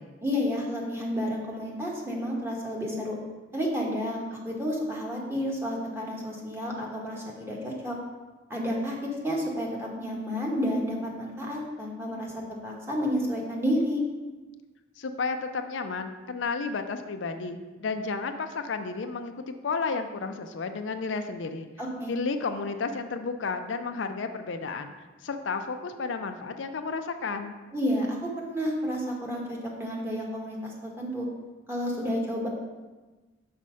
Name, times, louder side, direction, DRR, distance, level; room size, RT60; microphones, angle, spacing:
voice 1, 0.2-3.2 3.5-8.0 8.5-14.0 21.8-22.1 27.7-31.3 31.7-32.5, equal, 15° right, -3 dB, 1.3 m, -30 dB
voice 2, 15.0-21.7 22.1-24.9 25.2-27.6, left 4 dB, 75° left, 7 dB, 0.5 m, -32 dB
5.6 x 4.2 x 6.2 m, 1.2 s
head